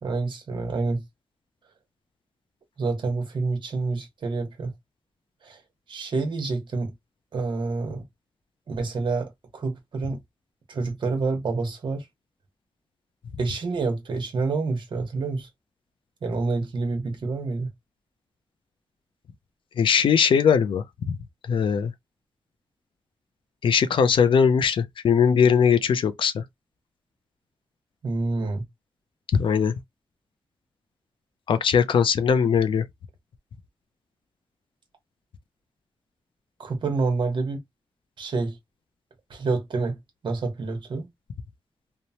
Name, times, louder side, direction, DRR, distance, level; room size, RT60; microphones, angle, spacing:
voice 1, 0.0-1.0 2.8-4.7 5.4-5.6 5.9-6.9 7.3-8.0 8.7-10.2 10.7-12.0 13.4-15.5 16.2-17.7 28.0-28.6 36.6-37.6 38.2-38.6 39.3-40.0 40.2-41.1, right 3 dB, 60° right, 1.0 m, -28 dB
voice 2, 19.8-21.2 21.5-21.9 23.6-26.4 29.3-29.7 31.5-32.9, left 7 dB, 70° left, 0.4 m, -20 dB
2.9 x 2.1 x 2.7 m
wide cardioid pair, 135°, 9 cm